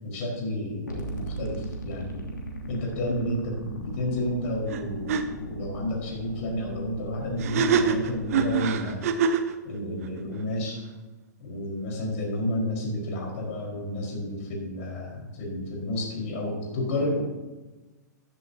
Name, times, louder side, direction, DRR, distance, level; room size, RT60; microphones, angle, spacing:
voice 1, 0.0-2.3 2.7-9.1 9.6-10.8 11.4-17.2, left 1 dB, 45° left, -2 dB, 4.6 m, -31 dB
sound 1, 0.9-8.6, right 1 dB, 80° left, 2.7 m, -38 dB
sound 2, 4.7-4.8 5.1-5.2 7.4-9.5, right 6 dB, 50° right, 1.0 m, -24 dB
14.5 x 12.5 x 2.8 m, 1.1 s
figure-of-eight pair, 110°, 10 cm